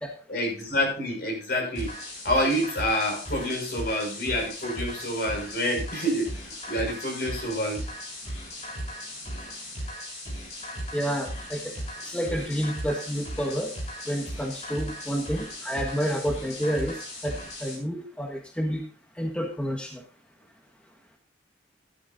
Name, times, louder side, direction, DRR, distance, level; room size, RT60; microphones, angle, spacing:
voice 1, 0.3-1.9 2.2-6.3 6.7-7.9, equal, 60° left, 1 dB, 5.7 m, -27 dB
sound 1, 1.7-17.7, equal, 40° left, 7.7 m, -37 dB
voice 2, 10.9-13.8 14.0-18.9 19.1-20.1, equal, 5° left, 1 dB, 1.4 m, -30 dB
13.0 x 13.0 x 2.6 m, 0.36 s
head